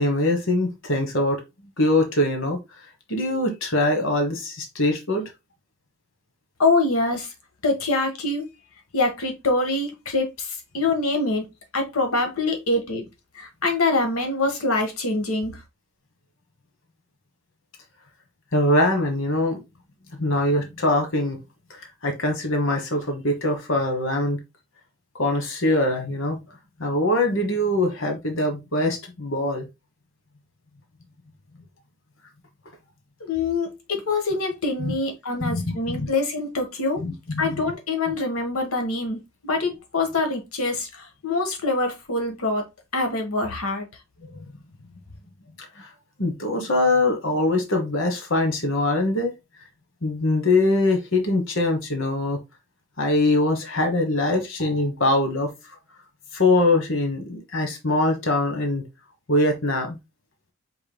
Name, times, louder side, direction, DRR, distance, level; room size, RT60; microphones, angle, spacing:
voice 1, 0.0-1.4 1.8-2.6 3.1-5.3 18.5-19.6 20.2-21.4 21.8-24.4 25.1-26.4 26.8-29.7 34.8-34.9 35.4-36.1 37.0-37.6 44.3-44.4 45.8-45.9 46.2-49.3 50.0-52.4 53.0-55.5 56.3-58.8 59.3-60.0, left 2 dB, 65° left, 1.3 m, -23 dB
voice 2, 6.6-7.3 7.6-8.4 8.9-11.5 11.7-13.0 13.3-15.6 33.2-37.0 37.4-42.6 42.9-43.9, left 2 dB, 85° left, 1.4 m, -25 dB
5.2 x 4.6 x 2.2 m
head